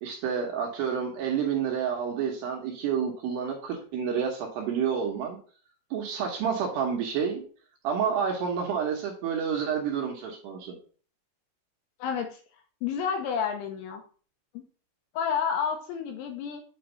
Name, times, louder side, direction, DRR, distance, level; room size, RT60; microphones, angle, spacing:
voice 1, 0.0-5.4 5.9-7.4 7.8-10.8, right 7 dB, 70° right, 0 dB, 2.7 m, -29 dB
voice 2, 12.0-12.4 12.8-14.0 14.5-14.6 15.1-16.6, left 7 dB, 80° left, 4 dB, 2.9 m, -30 dB
8.8 x 3.3 x 5.3 m, 0.41 s
omnidirectional pair, 5.9 m